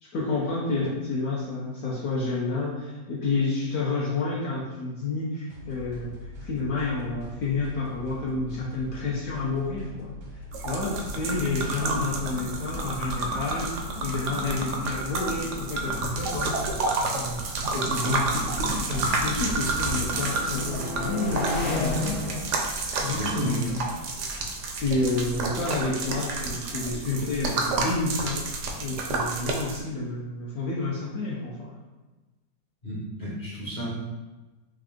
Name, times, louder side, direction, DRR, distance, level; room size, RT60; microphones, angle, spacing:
voice 1, 0.0-6.1 6.4-10.1 10.6-16.6 17.1-17.4 17.7-22.8 23.0-23.8 24.7-28.4 28.8-31.7, left 3 dB, 65° left, -5 dB, 1.0 m, -30 dB
sound 1, 5.5-15.8, left 2 dB, 90° right, 1.4 m, -42 dB
sound 2, 10.5-29.8, right 3 dB, 70° right, 0.7 m, -30 dB
sound 3, 14.0-14.2 15.0-18.9 19.3-25.9, left 2 dB, 85° left, 1.6 m, -36 dB
voice 2, 23.1-23.6 32.8-33.9, equal, 40° left, -6 dB, 0.9 m, -31 dB
3.6 x 2.4 x 3.5 m, 1.2 s
omnidirectional pair, 1.8 m